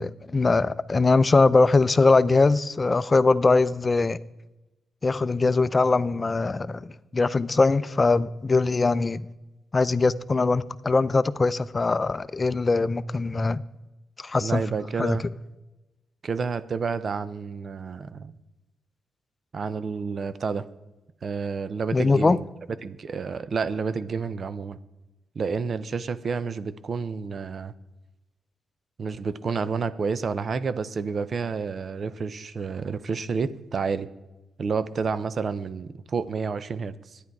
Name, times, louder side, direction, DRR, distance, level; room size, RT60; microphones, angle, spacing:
voice 1, 0.0-4.2 5.0-9.3 9.7-13.6 14.2-14.6 15.0-15.2 21.9-22.4, left 3 dB, 35° left, 0.6 m, -21 dB
voice 2, 14.4-15.2 16.2-18.3 19.5-20.7 21.2-22.5 22.8-24.8 25.4-27.7 29.0-34.1 34.6-37.2, right 5 dB, 55° right, 0.6 m, -30 dB
12.0 x 10.0 x 4.7 m
cardioid pair, 65°, 0 cm